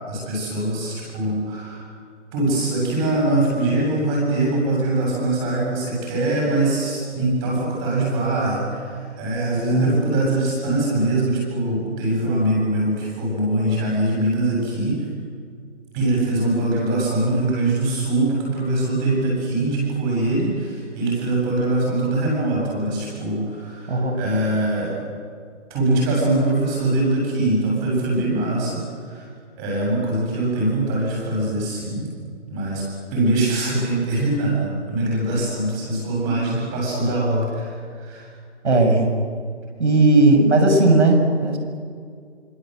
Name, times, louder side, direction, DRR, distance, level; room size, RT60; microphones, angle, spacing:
voice 1, 0.0-1.9 2.3-15.1 15.9-24.9 25.7-29.3 29.6-32.1 32.5-32.8 33.1-38.3, right 2 dB, 15° right, -2 dB, 7.8 m, -22 dB
voice 2, 23.9-24.2 38.6-39.1 39.8-41.6, right 2 dB, 65° right, 5 dB, 6.8 m, -16 dB
28.0 x 26.0 x 8.0 m, 2.2 s
hypercardioid pair, 170°, 38 cm